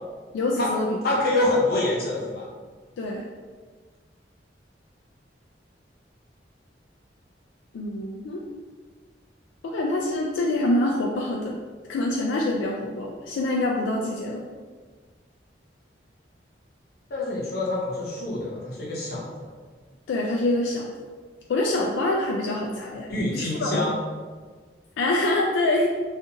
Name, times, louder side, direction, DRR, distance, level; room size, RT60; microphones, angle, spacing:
voice 1, 0.3-1.0 3.0-3.3 7.7-8.4 9.6-11.6 11.9-14.4 20.1-20.8 21.5-23.8 25.0-25.9, left 2 dB, 85° left, -2 dB, 0.3 m, -25 dB
voice 2, 1.0-2.5 17.1-19.5 23.1-23.9, left 2 dB, 60° left, -4 dB, 0.7 m, -26 dB
2.6 x 2.4 x 2.7 m, 1.5 s
head